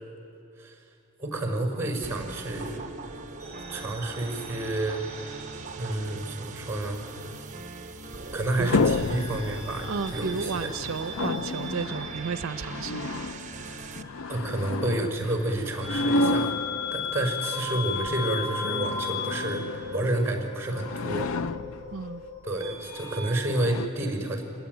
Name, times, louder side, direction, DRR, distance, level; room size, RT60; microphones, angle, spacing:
voice 1, 1.2-2.9 3.7-5.0 5.7-7.1 8.3-10.7 14.3-16.6 16.9-21.3 22.4-24.4, right 1 dB, 15° right, 3 dB, 5.1 m, -30 dB
sound 1, 2.0-14.0, right 3 dB, 35° right, 1.0 m, -41 dB
sound 2, 3.4-6.2 6.5-7.7 8.9-23.2, left 4 dB, 15° left, 6.8 m, -37 dB
sound 3, 8.3-17.6 18.3-20.4 20.7-22.2 23.0-23.1 23.5-23.9, left 3 dB, 80° left, 0.6 m, -31 dB
voice 2, 9.8-13.2 21.9-22.2, right 5 dB, 70° right, 10 dB, 0.6 m, -33 dB
26.5 x 21.0 x 9.3 m, 2.6 s
head